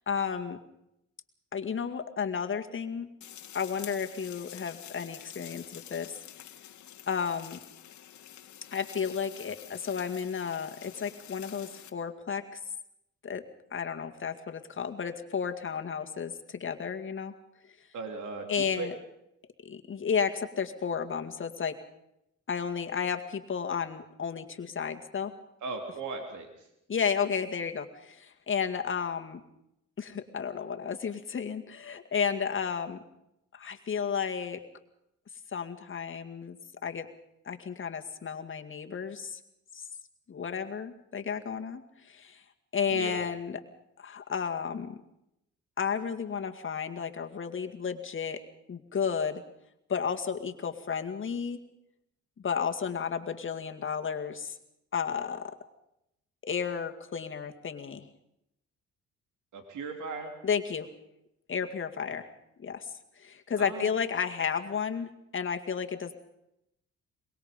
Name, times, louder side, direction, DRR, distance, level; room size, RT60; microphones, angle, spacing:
voice 1, 0.1-0.6 1.5-3.1 3.5-6.1 7.1-7.6 8.7-12.6 13.2-13.4 13.7-17.3 18.5-18.9 19.6-21.8 22.5-25.3 26.9-29.4 30.0-33.0 33.5-34.6 35.5-36.6 36.8-37.1 37.5-39.4 39.7-39.9 40.3-42.4 42.7-43.6 44.0-45.0 45.8-48.4 48.7-49.4 49.9-51.6 52.4-54.6 54.9-55.6 56.4-58.1 60.4-60.9 61.5-62.3 62.6-62.9 63.2-66.1, left 6 dB, 40° left, 5 dB, 2.1 m, -32 dB
sound 1, 3.2-11.9, left 11 dB, 70° left, 1.8 m, -48 dB
voice 2, 17.9-18.9 25.6-26.7 42.9-43.2 59.5-60.3 63.6-63.9, right 4 dB, 75° right, 4 dB, 3.3 m, -37 dB
24.0 x 21.5 x 5.3 m, 0.80 s
cardioid pair, 90°, 30 cm